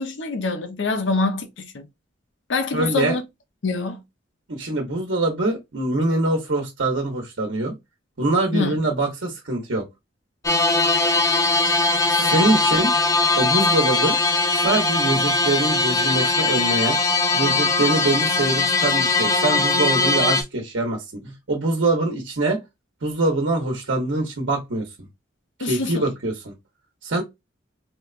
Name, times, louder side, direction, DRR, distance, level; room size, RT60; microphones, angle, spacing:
voice 1, 0.0-1.9 2.5-3.2 3.6-4.0 8.5-8.8 12.2-12.7 25.6-26.1, left 3 dB, 80° left, 0.7 m, -25 dB
voice 2, 2.7-3.2 4.5-7.7 8.2-9.9 12.1-12.9 13.4-14.2 14.6-17.0 17.3-22.6 23.0-24.9 25.6-26.5 27.0-27.2, right 2 dB, 85° right, 0.9 m, -23 dB
sound 1, 10.4-20.4, left 3 dB, 20° left, 0.4 m, -20 dB
4.3 x 2.2 x 2.4 m
head